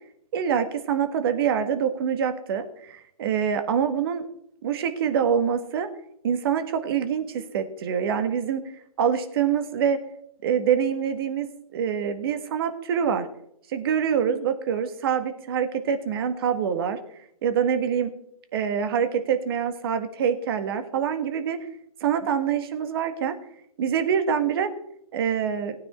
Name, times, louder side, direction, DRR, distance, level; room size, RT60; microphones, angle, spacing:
voice 1, 0.3-4.2 4.6-5.9 6.2-8.6 9.0-10.0 10.4-11.5 11.7-13.3 13.7-17.0 17.4-18.1 18.5-21.7 22.0-23.4 23.8-24.7 25.1-25.7, right 7 dB, 40° right, 9 dB, 1.7 m, -25 dB
17.5 x 9.5 x 4.4 m, 0.72 s
figure-of-eight pair, 140°, 19 cm